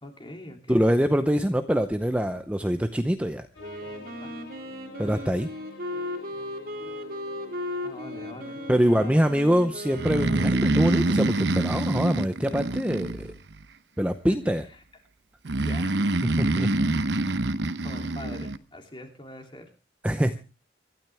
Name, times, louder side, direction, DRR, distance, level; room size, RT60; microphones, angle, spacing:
voice 1, 0.0-1.0 7.8-8.6 8.9-9.3 14.7-14.8 15.6-16.0 17.8-19.6, left 1 dB, 25° left, 4 dB, 2.9 m, -43 dB
voice 2, 0.7-3.5 5.0-5.5 8.7-13.3 14.0-14.6 16.3-16.9 20.0-20.4, equal, 5° right, 8 dB, 0.7 m, -24 dB
sound 1, 3.5-8.8, left 3 dB, 90° left, 3.7 m, -45 dB
Wind instrument woodwind instrument, 3.6-11.2, left 1 dB, 50° right, 2.9 m, -37 dB
Breathing, 9.9-13.6 15.4-18.6, right 2 dB, 70° right, 0.9 m, -26 dB
25.5 x 12.0 x 3.4 m, 0.33 s
head